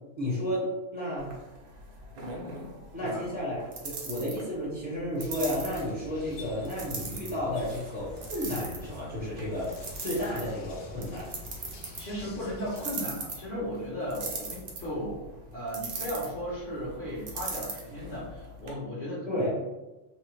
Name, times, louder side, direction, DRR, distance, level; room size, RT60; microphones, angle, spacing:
voice 1, 0.2-1.4 2.9-11.3 19.3-19.5, left 1 dB, 25° left, -8 dB, 0.8 m, -32 dB
sound 1, 1.2-18.7, right 3 dB, 75° right, 0.4 m, -41 dB
sound 2, 5.2-12.8, left 1 dB, 70° left, 0.9 m, -46 dB
voice 2, 12.0-15.2 15.5-19.6, equal, 45° left, -10 dB, 1.0 m, -36 dB
2.9 x 2.0 x 3.0 m, 1.1 s
omnidirectional pair, 1.4 m